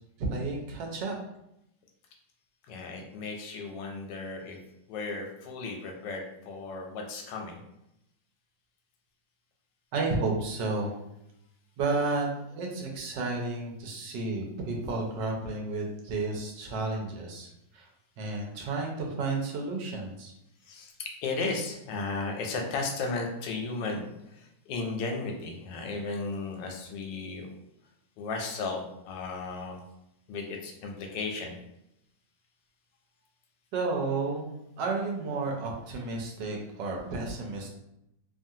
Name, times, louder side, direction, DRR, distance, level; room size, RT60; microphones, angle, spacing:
voice 1, 0.2-1.1 9.9-11.0 11.8-17.5 17.7-17.9 18.2-20.3 33.7-34.4 34.8-37.7, right 3 dB, 80° right, 0 dB, 1.3 m, -32 dB
voice 2, 2.7-4.6 4.9-7.6 20.6-27.5 28.2-29.8 30.3-31.5, left 3 dB, 85° left, 2 dB, 1.2 m, -35 dB
3.0 x 2.4 x 2.7 m, 0.84 s
omnidirectional pair, 1.9 m